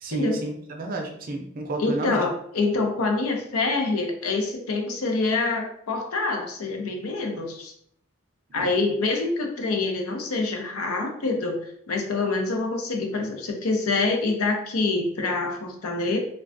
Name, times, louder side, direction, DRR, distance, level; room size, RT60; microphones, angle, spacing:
voice 1, 0.0-2.2 8.5-8.7, right 1 dB, 40° right, 2 dB, 0.4 m, -31 dB
voice 2, 1.8-7.7 8.5-16.2, left 3 dB, 80° left, 3 dB, 0.6 m, -26 dB
3.2 x 2.2 x 2.5 m, 0.66 s
head